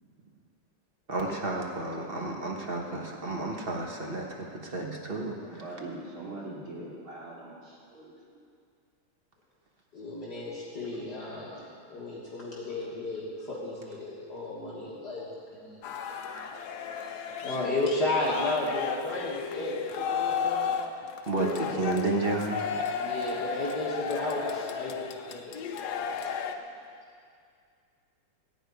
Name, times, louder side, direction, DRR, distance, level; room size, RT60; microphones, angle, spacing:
voice 1, 1.1-5.6 21.3-22.8, right 2 dB, 35° right, 0 dB, 1.0 m, -31 dB
voice 2, 5.4-8.2, right 2 dB, 70° right, -6 dB, 3.5 m, -42 dB
voice 3, 9.9-11.6 11.9-15.3 15.6-15.8 16.1-16.5 16.8-20.7 21.7-21.8 22.9-25.5 25.8-26.5, left 2 dB, 50° left, -6 dB, 2.0 m, -34 dB
sound 1, 15.8-26.6, left 7 dB, 70° left, 1.0 m, -34 dB
15.5 x 5.1 x 9.2 m, 2.3 s
omnidirectional pair, 2.4 m